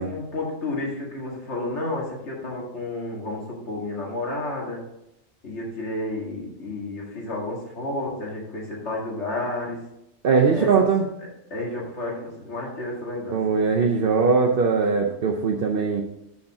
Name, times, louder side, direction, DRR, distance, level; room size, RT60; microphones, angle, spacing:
voice 1, 0.0-4.8 5.4-9.8 10.5-10.7 11.5-13.4, left 2 dB, 90° left, -3 dB, 2.3 m, -31 dB
voice 2, 10.2-11.1 13.3-16.0, right 5 dB, 60° right, 1 dB, 0.9 m, -20 dB
7.2 x 6.4 x 4.8 m, 0.83 s
omnidirectional pair, 1.1 m